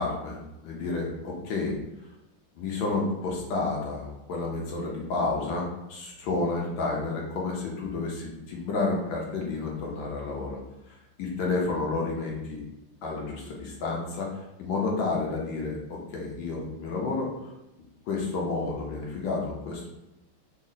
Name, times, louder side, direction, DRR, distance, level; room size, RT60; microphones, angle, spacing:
voice 1, 0.0-1.7 2.6-10.6 10.9-12.6 13.0-17.5 18.1-19.9, left 3 dB, 70° left, -2 dB, 1.3 m, -30 dB
4.0 x 2.0 x 3.8 m, 0.92 s
omnidirectional pair, 2.4 m